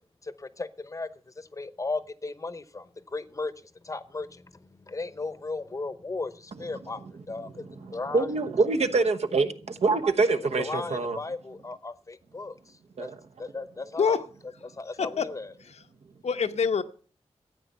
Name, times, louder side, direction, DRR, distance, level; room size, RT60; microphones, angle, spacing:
voice 1, 0.2-3.5 3.8-8.3 10.5-13.1 13.4-14.2 14.6-15.5, left 3 dB, 30° left, 0.8 m, -36 dB
voice 2, 7.6-11.2 13.0-13.2, right 3 dB, 70° right, 1.1 m, -25 dB
voice 3, 15.0-15.3 15.7-15.8 16.2-16.8, left 6 dB, 75° left, 0.9 m, -26 dB
13.5 x 8.7 x 6.8 m
wide cardioid pair, 135°, 11 cm